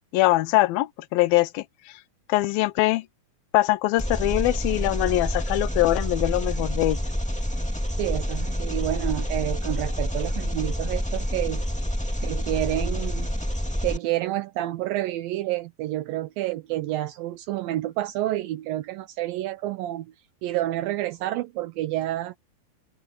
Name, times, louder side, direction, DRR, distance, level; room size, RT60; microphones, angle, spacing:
voice 1, 0.1-2.0 2.3-3.1 3.5-7.0, left 17 dB, 80° left, 2.6 m, -23 dB
Engine, 4.0-14.0, equal, ahead, 1.8 m, -28 dB
voice 2, 8.0-11.6 12.2-13.3 13.8-20.1 20.4-22.3, right 15 dB, 80° right, 2.4 m, -29 dB
open air
omnidirectional pair, 4.3 m